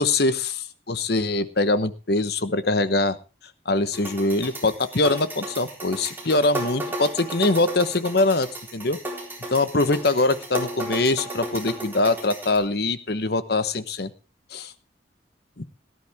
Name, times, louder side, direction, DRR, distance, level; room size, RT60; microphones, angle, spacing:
voice 1, 0.0-3.2 3.6-9.0 9.5-14.1 14.5-14.7 15.6-15.7, left 2 dB, 55° left, 13 dB, 1.0 m, -23 dB
sound 1, 3.9-12.6, right 1 dB, 10° right, 3.9 m, -34 dB
18.0 x 11.5 x 3.5 m, 0.31 s
head